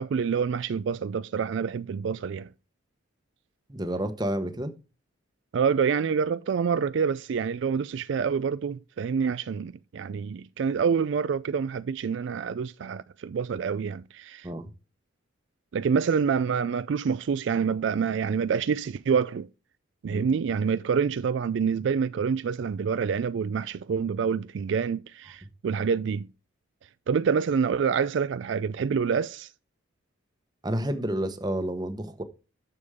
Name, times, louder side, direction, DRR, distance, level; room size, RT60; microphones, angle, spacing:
voice 1, 0.0-2.5 5.5-14.5 15.7-19.5 20.0-26.3 27.1-29.5, right 6 dB, 60° right, 0.3 m, -27 dB
voice 2, 3.7-4.7 14.4-14.7 20.1-20.3 30.6-32.2, right 1 dB, 20° right, 0.9 m, -30 dB
9.7 x 7.0 x 3.6 m
head